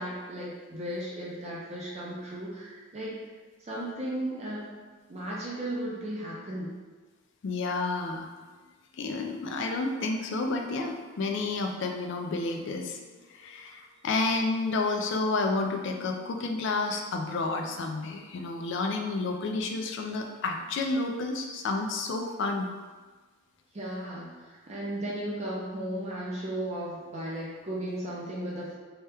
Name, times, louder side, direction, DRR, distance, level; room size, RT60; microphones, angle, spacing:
voice 1, 0.0-3.2 3.6-4.7 5.1-6.7 23.7-28.8, right 1 dB, 30° right, -5 dB, 0.5 m, -35 dB
voice 2, 7.4-8.3 8.9-22.7, left 3 dB, 60° left, 3 dB, 0.3 m, -30 dB
2.8 x 2.2 x 3.3 m, 1.4 s
head